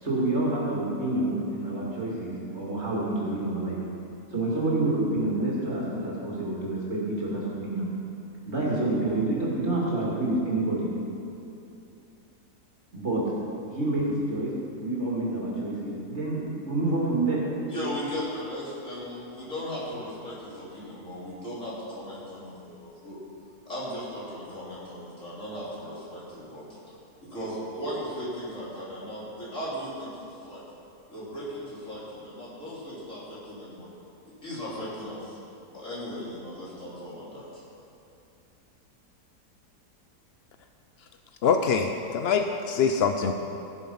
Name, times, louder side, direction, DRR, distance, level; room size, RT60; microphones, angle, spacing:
voice 1, 0.0-3.8 4.3-7.9 8.5-10.9 12.9-13.2 13.7-17.4, right 2 dB, 40° right, -6 dB, 2.9 m, -28 dB
voice 2, 17.7-23.2 23.7-26.9 27.3-30.6 31.1-33.9 34.4-35.4 35.7-37.6, equal, 50° left, -8 dB, 3.8 m, -37 dB
voice 3, 41.4-43.3, left 6 dB, 75° left, 6 dB, 0.5 m, -24 dB
16.5 x 7.3 x 5.6 m, 2.7 s
omnidirectional pair, 1.7 m